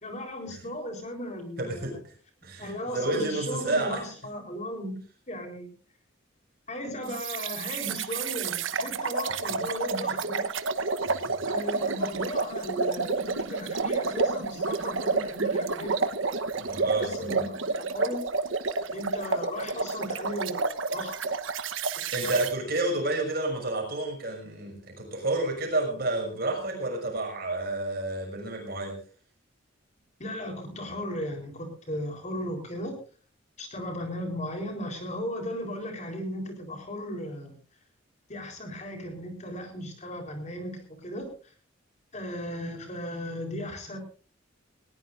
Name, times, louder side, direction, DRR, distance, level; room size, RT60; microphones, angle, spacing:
voice 1, 0.0-2.0 2.6-5.0 5.3-5.7 6.7-10.5 11.4-16.1 16.9-18.2 18.9-21.3 22.2-22.4 30.2-33.0 33.6-37.6 38.3-41.5 42.1-44.0, equal, 35° left, 4 dB, 3.9 m, -36 dB
voice 2, 1.6-2.0 2.4-4.0 11.1-11.3 16.6-17.4 22.1-29.0, right 2 dB, 50° right, 3 dB, 6.4 m, -30 dB
sound 1, 7.1-22.5, right 4 dB, 75° right, 1.1 m, -30 dB
20.0 x 19.0 x 2.6 m, 0.38 s
head